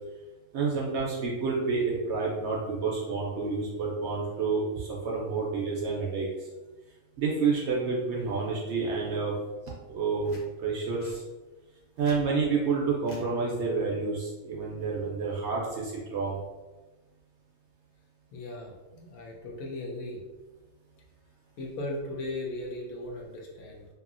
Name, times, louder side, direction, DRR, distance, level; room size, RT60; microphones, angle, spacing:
voice 1, 0.5-6.5 7.2-9.3 9.9-10.3 10.6-11.2 12.0-16.4, right 4 dB, 65° right, -4 dB, 0.7 m, -29 dB
sound 1, 10.2-10.5 11.0-11.2 11.8-12.2 13.0-13.3 14.6-14.8, left 2 dB, 45° left, 0.6 m, -50 dB
voice 2, 18.3-20.2 21.6-23.9, left 1 dB, 75° left, -1 dB, 1.0 m, -37 dB
2.8 x 2.6 x 2.4 m, 1.2 s
omnidirectional pair, 1.5 m